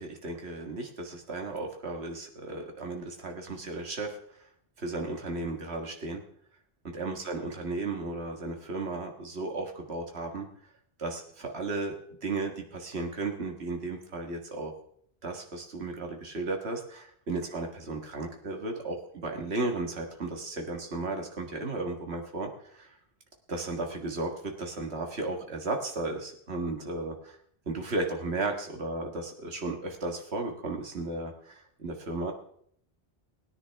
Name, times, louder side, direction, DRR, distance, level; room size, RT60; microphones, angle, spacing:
voice 1, 0.0-4.5 4.8-6.2 6.8-10.5 11.0-11.9 12.2-14.7 15.2-23.0 23.5-27.4 27.7-32.3, right 2 dB, 75° right, 3 dB, 2.0 m, -34 dB
20.0 x 9.9 x 3.5 m, 0.65 s
omnidirectional pair, 1.1 m